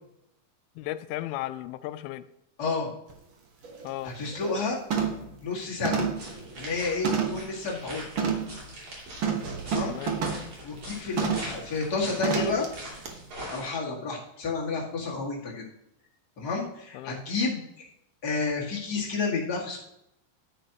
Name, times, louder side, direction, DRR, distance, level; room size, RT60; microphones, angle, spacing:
voice 1, 0.8-2.3 3.8-4.1 9.9-10.1 16.9-17.2, left 15 dB, 90° left, 13 dB, 2.5 m, -35 dB
voice 2, 2.6-2.9 4.0-4.8 5.4-6.1 6.6-8.0 9.6-9.9 10.6-12.7 13.5-15.7 16.4-17.9 18.2-19.8, left 4 dB, 35° left, -3 dB, 1.8 m, -30 dB
sound 1, 3.1-3.2 3.6-3.9 4.3-4.6 4.9-5.3 5.8-7.5 8.2-8.5 9.2-10.5 11.2-11.5 12.2-12.7 13.0-13.1, right 6 dB, 75° right, 1.1 m, -29 dB
sound 2, 6.2-13.7, right 1 dB, 45° right, 3.7 m, -42 dB
10.5 x 9.9 x 2.9 m, 0.83 s
omnidirectional pair, 4.3 m